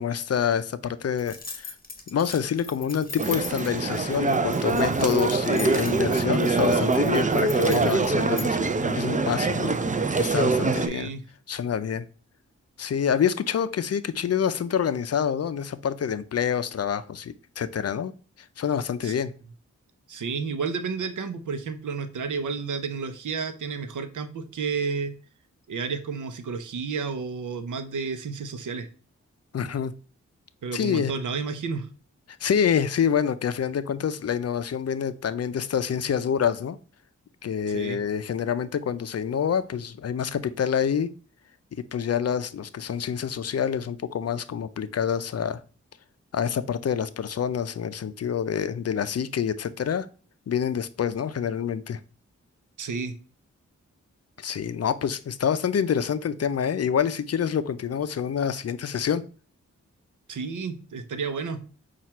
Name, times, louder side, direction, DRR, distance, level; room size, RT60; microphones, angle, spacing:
voice 1, 0.0-1.7 2.1-9.8 10.2-11.1 11.5-12.0 12.8-18.1 18.6-19.3 29.5-29.9 30.7-31.1 32.4-36.8 37.4-41.1 41.9-45.6 46.3-50.1 50.5-52.0 54.4-59.2, left 8 dB, 55° left, 0.5 m, -27 dB
sound 1, 1.2-8.5, left 4 dB, 30° left, 1.1 m, -40 dB
sound 2, 3.2-10.9, right 3 dB, 25° right, 0.5 m, -24 dB
voice 2, 10.7-11.2 19.0-19.1 20.1-25.2 25.7-28.9 30.6-31.9 37.7-38.0 52.8-53.1 60.3-61.6, right 5 dB, 75° right, 0.7 m, -31 dB
5.6 x 2.5 x 3.0 m
cardioid pair, 40°, 30 cm